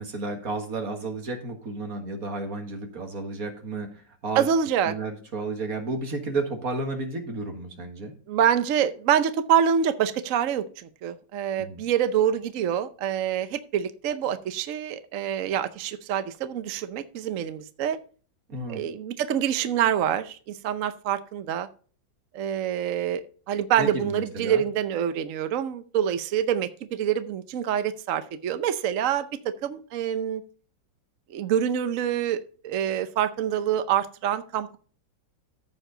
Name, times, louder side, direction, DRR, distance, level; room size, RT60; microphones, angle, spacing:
voice 1, 0.0-4.5 4.9-8.1 11.6-11.8 18.5-18.8 23.8-24.6, right 3 dB, 50° right, 4 dB, 1.9 m, -32 dB
voice 2, 4.3-4.9 8.3-18.0 18.7-21.7 22.3-30.4 31.3-32.4 32.6-34.8, right 9 dB, 65° right, 11 dB, 0.8 m, -26 dB
14.5 x 4.9 x 3.8 m, 0.40 s
omnidirectional pair, 2.1 m